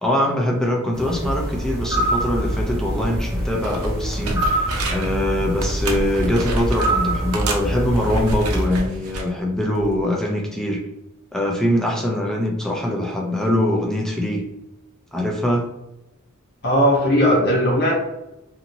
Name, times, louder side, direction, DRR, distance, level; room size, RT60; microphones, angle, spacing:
voice 1, 0.0-10.8 11.3-14.4 15.1-15.7, left 1 dB, ahead, -2 dB, 0.5 m, -23 dB
sound 1, 0.9-8.7, right 1 dB, 15° right, 1.2 m, -25 dB
sound 2, 3.6-5.2 5.6-7.0 7.3-9.3 9.8-10.0, right 2 dB, 80° right, 0.6 m, -28 dB
voice 2, 16.6-17.9, equal, 50° left, -4 dB, 0.9 m, -17 dB
2.8 x 2.6 x 2.7 m, 0.91 s
head